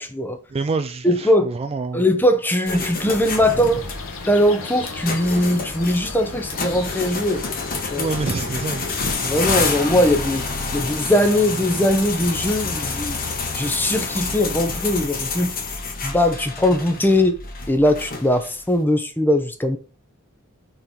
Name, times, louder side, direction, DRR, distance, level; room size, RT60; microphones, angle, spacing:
voice 1, 0.0-0.4 1.0-1.5 1.9-3.8 4.3-7.4 7.9-8.1 9.2-10.5 10.7-13.2 13.5-15.5 16.0-17.4 17.7-19.8, left 1 dB, 10° left, 0.8 m, -20 dB
voice 2, 0.5-2.0 8.0-8.9, right 3 dB, 30° right, 0.3 m, -26 dB
sound 1, 2.6-18.6, left 4 dB, 45° left, 1.2 m, -28 dB
sound 2, 3.0-9.1, left 3 dB, 70° left, 1.2 m, -35 dB
4.4 x 4.4 x 5.0 m
head